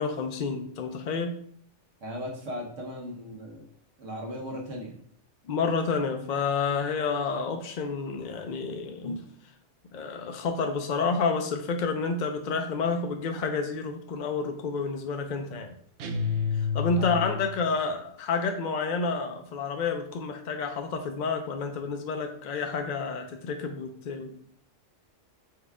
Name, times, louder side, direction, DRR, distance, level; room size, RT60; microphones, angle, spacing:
voice 1, 0.0-1.3 5.5-9.3 9.9-15.8 16.6-24.4, left 4 dB, 60° left, 4 dB, 0.5 m, -29 dB
voice 2, 2.0-3.7 4.0-5.0 16.9-17.3, equal, 90° right, 0 dB, 1.5 m, -37 dB
sound 1, 16.0-17.7, left 6 dB, 65° right, 0.7 m, -29 dB
4.5 x 2.3 x 4.7 m, 0.62 s
omnidirectional pair, 1.2 m